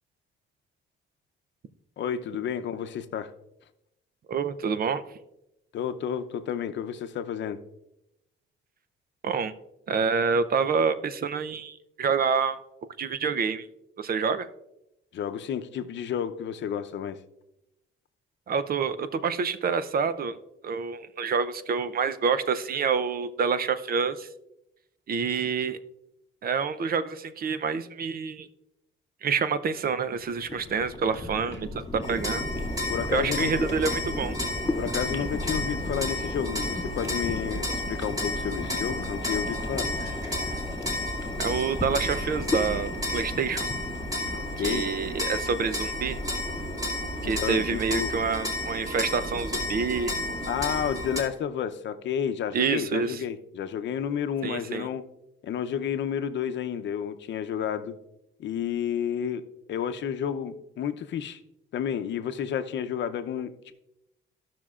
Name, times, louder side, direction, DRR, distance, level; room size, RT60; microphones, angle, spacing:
voice 1, 2.0-3.3 5.7-7.6 15.1-17.2 32.9-33.5 34.8-39.9 44.3-44.9 47.2-48.1 50.5-55.0 55.4-57.9 58.4-59.4 59.7-61.4 61.7-63.7, left 8 dB, 65° left, 9 dB, 0.7 m, -31 dB
voice 2, 4.3-5.0 9.2-9.5 9.9-12.6 13.0-13.7 14.0-14.5 18.5-20.4 20.6-24.3 25.1-25.8 26.4-28.5 29.2-32.4 33.1-34.3 41.4-43.7 44.6-46.2 47.2-50.1 52.5-53.2 54.4-54.9, right 5 dB, 50° right, 12 dB, 0.6 m, -27 dB
sound 1, 30.1-45.4, left 2 dB, 15° left, 1.9 m, -36 dB
sound 2, 32.0-51.2, left 1 dB, 20° right, 2.6 m, -32 dB
16.0 x 5.9 x 2.4 m, 0.88 s
cardioid pair, 90°, 20 cm